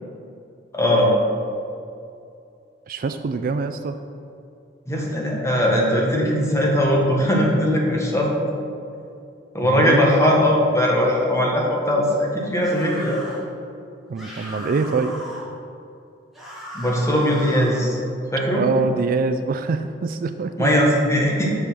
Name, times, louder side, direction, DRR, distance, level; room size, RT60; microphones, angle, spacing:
voice 1, 0.7-1.1 4.9-8.3 9.5-13.2 16.7-18.0 18.3-18.6 20.6-21.5, equal, 15° left, -2 dB, 1.4 m, -19 dB
voice 2, 2.9-4.0 9.6-10.1 14.1-15.2 18.5-20.7, right 4 dB, 50° right, 9 dB, 0.3 m, -24 dB
sound 1, 12.6-13.4 14.2-15.5 16.3-17.8, equal, ahead, 1.7 m, -37 dB
6.6 x 5.6 x 6.1 m, 2.5 s
head